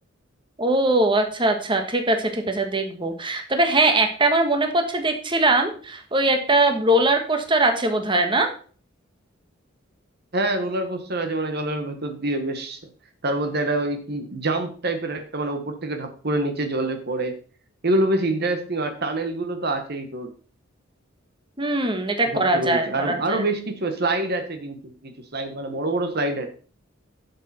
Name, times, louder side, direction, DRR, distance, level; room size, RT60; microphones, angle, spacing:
voice 1, 0.6-8.5 21.6-23.4, right 2 dB, 25° right, 5 dB, 1.4 m, -21 dB
voice 2, 10.3-12.8 13.2-17.4 17.8-20.3 22.3-26.5, right 2 dB, 55° right, 6 dB, 1.3 m, -26 dB
11.5 x 6.8 x 4.3 m, 0.42 s
head